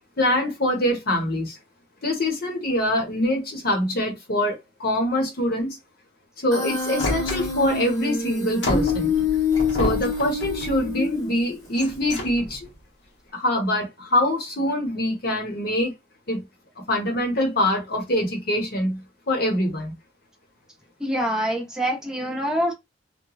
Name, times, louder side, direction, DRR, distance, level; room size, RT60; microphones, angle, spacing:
voice 1, 0.2-1.6 2.0-5.8 6.4-9.1 9.8-12.7 13.3-15.9 16.3-16.4 16.9-19.0 19.3-19.9, left 1 dB, 60° left, 1.0 m, -24 dB
Human voice, 6.5-11.5, left 5 dB, 20° left, 1.2 m, -26 dB
sound 1, 7.0-7.9 8.6-10.9 11.6-12.7, left 1 dB, 90° left, 0.9 m, -30 dB
voice 2, 21.0-22.7, equal, 5° right, 0.8 m, -25 dB
3.0 x 2.2 x 2.3 m
head